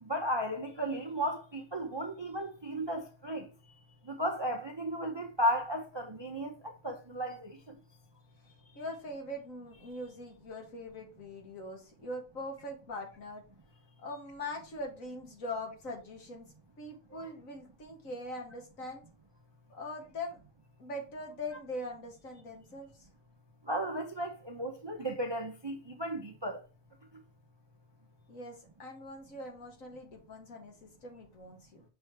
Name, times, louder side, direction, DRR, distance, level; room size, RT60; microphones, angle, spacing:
voice 1, 0.0-3.5 4.0-7.8 17.1-17.3 23.7-26.6, equal, 30° right, 0.5 m, -35 dB
voice 2, 8.8-13.4 14.0-19.0 19.7-20.4 20.8-23.1 28.3-31.8, left 1 dB, 65° left, 2.0 m, -42 dB
6.1 x 3.4 x 4.5 m
omnidirectional pair, 1.5 m